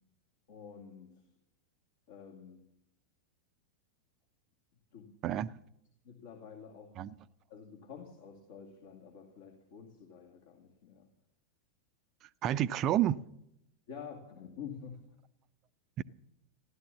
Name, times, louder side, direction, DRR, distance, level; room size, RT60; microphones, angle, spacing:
voice 1, 0.5-1.1 2.1-2.6 4.9-5.1 6.0-6.9 7.5-11.0 13.9-15.0, left 7 dB, 55° left, 2.4 m, -48 dB
voice 2, 5.2-5.6 7.0-7.1 12.2-13.2 16.0-16.1, right 12 dB, 35° right, 0.5 m, -30 dB
15.5 x 12.0 x 7.1 m
figure-of-eight pair, 90°, 0 cm